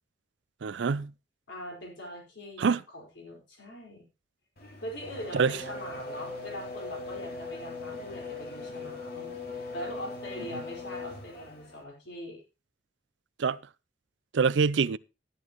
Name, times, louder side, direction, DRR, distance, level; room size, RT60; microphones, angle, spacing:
voice 1, 0.6-1.1 2.6-2.8 5.3-5.6 13.4-13.6 14.3-15.0, right 5 dB, 70° right, 0.5 m, -25 dB
voice 2, 1.5-4.0 4.8-12.4, equal, 75° left, 4.9 m, -42 dB
Race car auto racing / Accelerating revving vroom, 4.6-11.8, left 3 dB, 55° left, 2.5 m, -40 dB
12.5 x 11.0 x 3.1 m
head